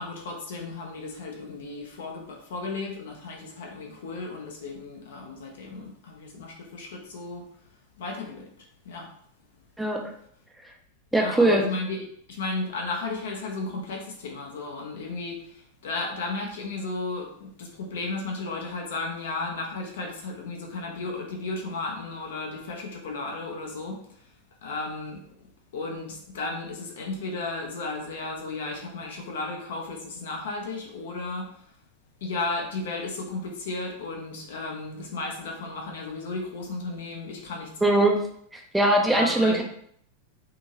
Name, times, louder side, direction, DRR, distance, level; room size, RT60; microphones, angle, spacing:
voice 1, 0.0-7.5 8.0-8.5 8.8-9.1 11.1-24.3 24.6-25.5 25.7-31.7 32.2-38.1 39.1-39.6, left 3 dB, 60° left, 1 dB, 0.7 m, -34 dB
voice 2, 11.1-11.6 37.8-38.2 38.5-39.6, right 1 dB, 5° right, 1 dB, 0.4 m, -21 dB
2.7 x 2.6 x 2.8 m, 0.66 s
figure-of-eight pair, 90°, 0 cm